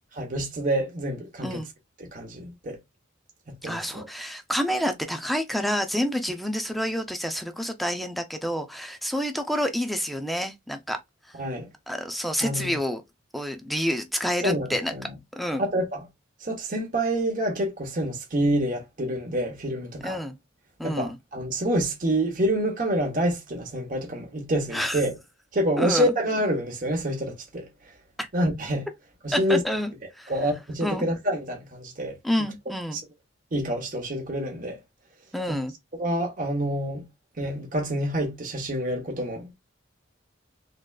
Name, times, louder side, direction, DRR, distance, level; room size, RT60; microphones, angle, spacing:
voice 1, 0.2-1.6 2.0-2.8 3.5-4.1 11.3-11.7 12.4-12.8 14.4-15.1 15.6-16.1 16.4-20.2 20.8-25.1 25.5-27.7 28.3-28.9 29.2-29.6 30.3-32.2 32.9-33.0 33.5-34.8 35.5-35.6 36.0-37.1 37.4-39.5, right 1 dB, 45° right, 0.9 m, -27 dB
voice 2, 3.6-11.0 11.9-13.0 13.3-14.9 15.3-15.7 20.0-20.4 20.8-21.2 24.7-25.0 25.8-26.1 28.2-28.3 29.3-30.3 30.8-31.0 32.2-33.0 35.3-35.7, equal, ahead, 0.5 m, -28 dB
3.7 x 3.2 x 2.3 m
head